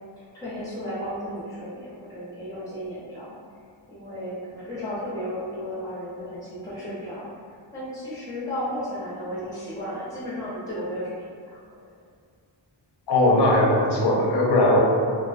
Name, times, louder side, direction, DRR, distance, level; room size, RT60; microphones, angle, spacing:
voice 1, 0.2-3.3 3.9-7.3 7.7-11.8, equal, 10° left, -10 dB, 0.8 m, -34 dB
voice 2, 13.1-14.8, left 1 dB, 60° left, -3 dB, 0.6 m, -19 dB
2.3 x 2.1 x 2.5 m, 2.2 s
wide cardioid pair, 65°, 46 cm